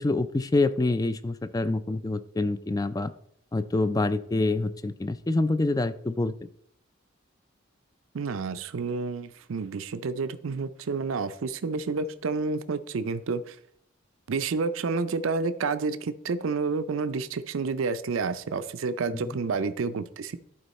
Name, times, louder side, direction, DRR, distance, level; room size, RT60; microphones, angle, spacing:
voice 1, 0.0-3.1 3.5-6.3, left 2 dB, 20° left, 14 dB, 0.3 m, -26 dB
voice 2, 8.1-13.6 14.3-20.4, right 4 dB, 80° right, 11 dB, 0.5 m, -29 dB
11.5 x 4.4 x 4.1 m, 0.67 s
head